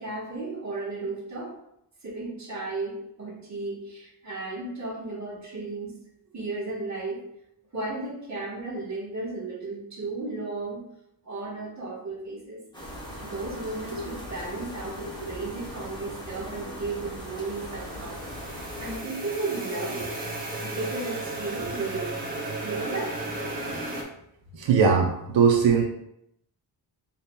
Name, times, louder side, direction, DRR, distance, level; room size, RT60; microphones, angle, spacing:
voice 1, 0.0-1.5 2.0-5.9 6.3-7.2 7.7-10.8 11.2-12.6 13.2-18.2 18.8-20.1 20.6-22.1 22.6-23.2, right 3 dB, 40° right, -3 dB, 1.3 m, -34 dB
sound 1, 12.7-19.0, equal, 10° left, 0.9 m, -40 dB
sound 2, 17.3-24.0, right 2 dB, 20° right, 0.8 m, -34 dB
voice 2, 24.6-25.8, right 6 dB, 85° right, 1 dB, 0.7 m, -20 dB
6.8 x 2.8 x 2.2 m, 0.77 s
wide cardioid pair, 175°, 44 cm